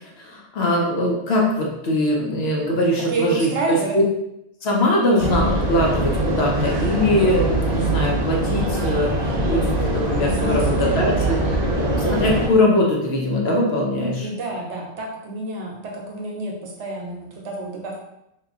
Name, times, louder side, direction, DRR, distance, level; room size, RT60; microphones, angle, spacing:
voice 1, 0.2-3.8 4.6-11.4 11.7-14.3, left 1 dB, 60° left, -1 dB, 1.0 m, -22 dB
voice 2, 3.1-4.0 10.2-11.4 14.2-18.0, right 2 dB, 70° right, -1 dB, 1.0 m, -29 dB
sound 1, 5.2-12.5, right 1 dB, 50° right, 0.5 m, -22 dB
2.9 x 2.4 x 3.5 m, 0.81 s
omnidirectional pair, 1.3 m